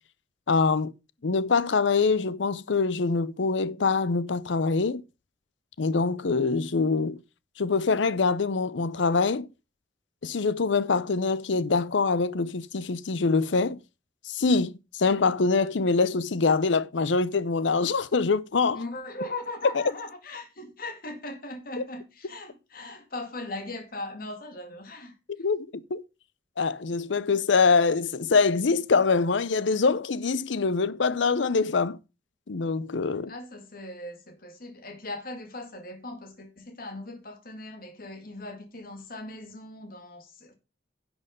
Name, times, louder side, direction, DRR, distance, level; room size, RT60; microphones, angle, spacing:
voice 1, 0.5-0.9 1.2-5.0 5.8-7.2 7.6-9.5 10.2-13.8 14.3-18.8 25.4-26.0 26.6-32.0 32.5-33.3, left 4 dB, 80° left, 0.6 m, -24 dB
voice 2, 18.7-25.1 33.3-40.5, left 2 dB, 50° left, 2.2 m, -39 dB
10.5 x 6.2 x 5.2 m
head